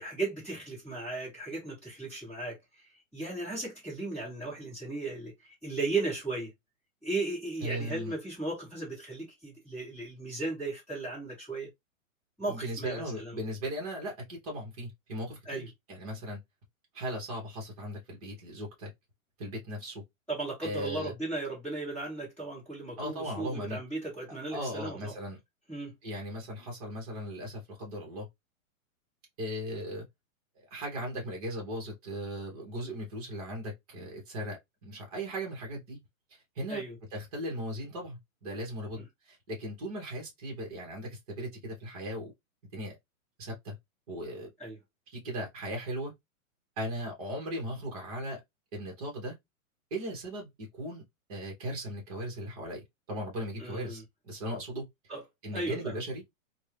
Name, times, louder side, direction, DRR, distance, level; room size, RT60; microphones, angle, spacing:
voice 1, 0.0-2.6 3.1-6.5 7.0-11.7 12.4-13.4 15.4-15.7 20.3-25.1 25.7-25.9 36.7-36.9 39.0-39.1 44.6-44.8 53.6-54.0 55.1-55.2 55.5-55.8, right 2 dB, 5° left, 1.2 m, -36 dB
voice 2, 7.6-8.1 12.5-16.4 16.9-18.9 19.4-20.0 20.6-21.1 23.0-23.8 24.5-25.4 26.0-28.3 29.4-30.0 30.7-36.0 36.5-36.8 37.1-42.3 42.7-43.0 43.4-43.8 44.1-44.5 45.1-46.1 46.8-48.4 48.7-49.3 49.9-50.5 50.8-51.0 51.3-54.8 55.4-56.2, equal, 25° right, 1.0 m, -37 dB
2.6 x 2.2 x 3.2 m
hypercardioid pair, 180°, 41 cm